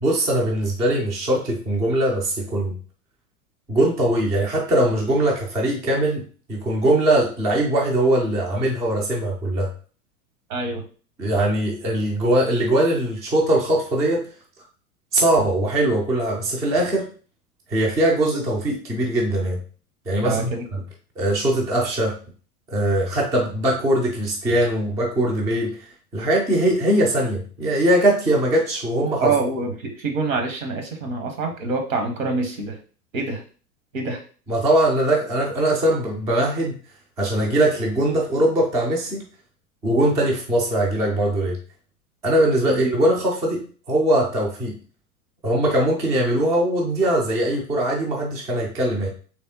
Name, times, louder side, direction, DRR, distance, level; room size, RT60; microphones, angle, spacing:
voice 1, 0.0-2.8 3.7-6.2 6.5-9.7 11.2-14.2 15.1-17.1 17.7-19.6 20.1-20.5 21.2-22.2 22.7-29.3 34.5-36.8 37.2-39.3 39.8-41.6 42.2-44.8 45.4-49.1, right 1 dB, 10° right, -1 dB, 0.3 m, -21 dB
voice 2, 10.5-10.8 20.2-20.7 29.2-32.8 33.1-33.4 33.9-34.2 42.6-42.8, right 3 dB, 65° right, 3 dB, 1.2 m, -26 dB
3.3 x 3.2 x 2.9 m, 0.39 s
figure-of-eight pair, 90°, 44 cm